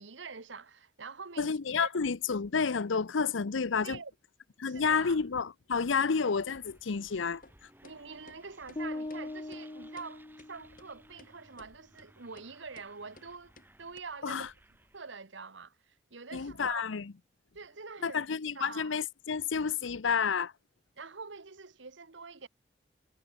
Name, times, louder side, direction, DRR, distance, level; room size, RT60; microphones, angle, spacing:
voice 1, 0.0-1.9 3.8-4.1 4.6-5.2 7.8-13.5 13.8-14.5 14.9-16.8 17.5-18.2 18.5-19.0 21.0-22.5, right 4 dB, 80° right, 1.4 m, -45 dB
voice 2, 1.4-4.0 4.6-7.4 14.2-14.5 16.3-17.1 18.0-20.5, left 5 dB, 90° left, 0.7 m, -30 dB
sound 1, 5.8-15.2, right 1 dB, 10° right, 5.6 m, -61 dB
sound 2, 7.4-7.6 7.8-8.0 8.3-8.4 8.7-8.8 9.1-9.2 9.5-9.6 10.0-10.1 10.4-10.5 10.8-10.9 11.2-11.3 11.6-11.7 12.0-12.1 12.4-12.5 12.7-12.9 13.2-13.3 13.6-13.7 14.0-14.1, left 2 dB, 45° left, 5.2 m, -56 dB
sound 3, 8.8-10.9, left 2 dB, 25° left, 0.5 m, -40 dB
head